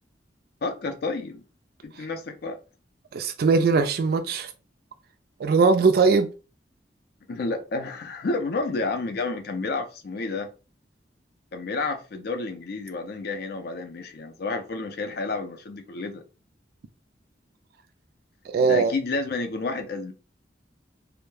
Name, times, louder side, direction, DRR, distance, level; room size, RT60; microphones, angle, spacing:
voice 1, 0.6-1.4 1.8-2.6 7.3-10.5 11.5-16.2 18.6-20.1, left 3 dB, 60° left, 0.4 m, -30 dB
voice 2, 3.1-4.5 5.4-6.3 18.5-18.9, right 4 dB, 55° right, 0.3 m, -20 dB
2.2 x 2.1 x 3.0 m
head